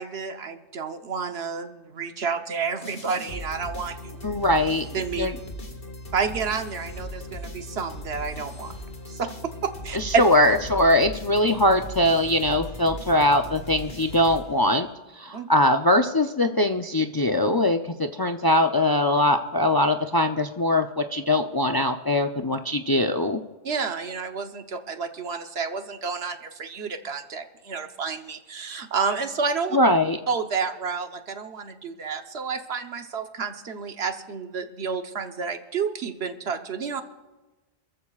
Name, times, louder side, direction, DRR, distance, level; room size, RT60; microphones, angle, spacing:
voice 1, 0.0-4.2 4.9-5.3 6.1-8.7 9.1-10.0 15.3-15.5 23.6-29.8 30.3-37.0, right 5 dB, 70° right, 7 dB, 1.2 m, -30 dB
sound 1, 2.8-14.9, equal, 55° left, 2.0 m, -38 dB
voice 2, 4.2-4.8 5.2-5.3 9.9-14.9 15.2-23.4 29.7-30.2, left 1 dB, 30° left, 5 dB, 0.4 m, -21 dB
28.0 x 14.5 x 2.4 m, 1.2 s
omnidirectional pair, 1.1 m